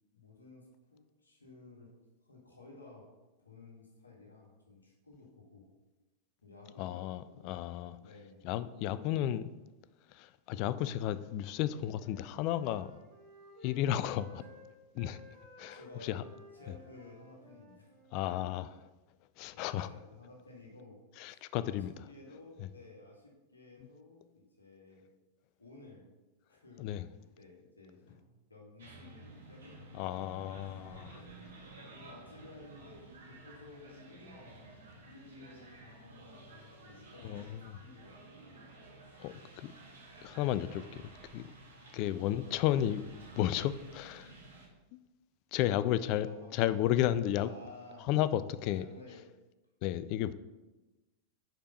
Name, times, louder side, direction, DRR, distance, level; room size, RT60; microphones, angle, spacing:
voice 1, 0.1-3.1 3.4-5.7 6.4-7.5 8.0-8.4 8.8-9.2 14.4-14.6 15.7-16.3 16.5-17.9 19.5-25.1 25.6-26.1 26.4-26.9 27.2-30.3 31.1-31.3 31.9-38.2 45.5-46.6 47.3-48.1 48.7-49.3, left 3 dB, 80° left, 1.6 m, -55 dB
voice 2, 6.8-8.0 8.4-9.4 10.1-12.9 13.6-14.4 15.0-15.2 15.6-16.2 18.1-18.9 19.4-19.9 21.2-21.9 22.6-22.7 26.8-27.1 29.9-31.2 37.2-37.7 39.2-39.7 40.2-41.0 41.3-41.5 41.9-43.0 43.4-44.3 45.5-46.3 46.5-47.5 48.1-48.9 49.8-50.3, left 12 dB, 45° left, 0.3 m, -33 dB
Wind instrument woodwind instrument, 11.5-18.4, left 1 dB, 50° right, 1.6 m, -56 dB
sound 1, 28.8-44.7, right 2 dB, 65° right, 1.4 m, -53 dB
5.1 x 4.4 x 5.4 m
figure-of-eight pair, 90°, 0 cm